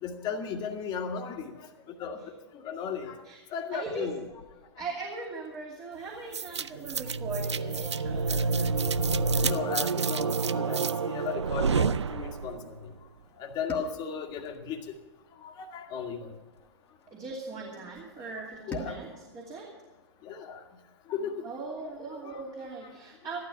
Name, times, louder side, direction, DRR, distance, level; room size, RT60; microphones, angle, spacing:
voice 1, 0.0-1.5 2.0-2.2 2.5-3.2 3.5-4.2 9.4-12.8 13.4-14.8 15.4-16.3 17.6-17.7 18.7-19.0 20.2-20.6 21.1-21.4 21.8-21.9 22.2-22.4, left 6 dB, 30° left, 4 dB, 1.8 m, -35 dB
voice 2, 3.7-4.1 4.8-9.7 17.1-19.7 21.4-23.5, right 3 dB, 25° right, -2 dB, 2.6 m, -40 dB
sound 1, 4.2-4.8 5.1-5.6 6.0-6.3 6.6-11.0 12.4-12.5 13.8-14.6 14.8-15.1 15.6-15.7 15.9-16.0 16.4-16.6 16.9-17.0 18.5-18.8, left 3 dB, 80° left, 2.4 m, -42 dB
sound 2, 4.8-7.0 9.4-11.8 13.7-16.2 18.7-21.2, left 1 dB, 10° left, 1.7 m, -48 dB
sound 3, 6.3-12.7, right 5 dB, 80° right, 0.5 m, -28 dB
14.5 x 12.0 x 5.9 m, 1.2 s
figure-of-eight pair, 110°, 14 cm